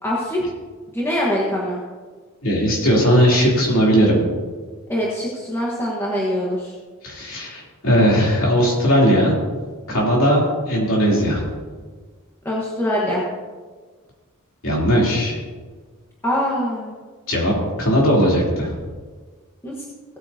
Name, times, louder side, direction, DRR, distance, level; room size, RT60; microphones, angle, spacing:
voice 1, 0.0-0.4 0.9-1.8 4.9-6.8 12.4-13.2 16.2-17.0 19.6-19.8, equal, 10° left, -5 dB, 1.4 m, -23 dB
voice 2, 2.4-4.3 7.0-9.4 9.9-11.4 14.6-15.4 17.3-18.8, equal, 65° left, -4 dB, 3.4 m, -18 dB
17.5 x 8.8 x 2.9 m, 1.5 s
head